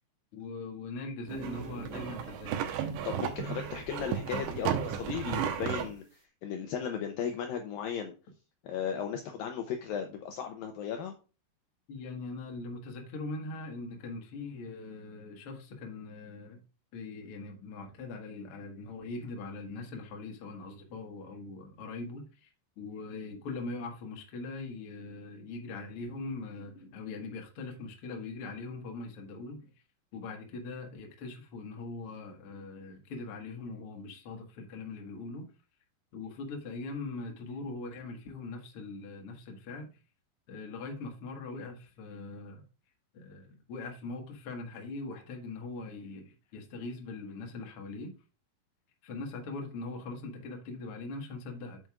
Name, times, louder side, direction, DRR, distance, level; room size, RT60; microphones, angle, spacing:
voice 1, 0.3-2.6 11.9-16.6 16.9-22.5 22.8-29.7 30.1-35.5 36.1-39.9 40.5-42.6 43.1-48.1 49.0-51.8, left 3 dB, 60° left, 1.5 m, -41 dB
sound 1, 1.3-5.9, right 9 dB, 90° right, 3.2 m, -34 dB
voice 2, 3.0-8.1 8.6-11.1, left 8 dB, 85° left, 2.0 m, -36 dB
9.1 x 7.8 x 2.4 m
omnidirectional pair, 5.2 m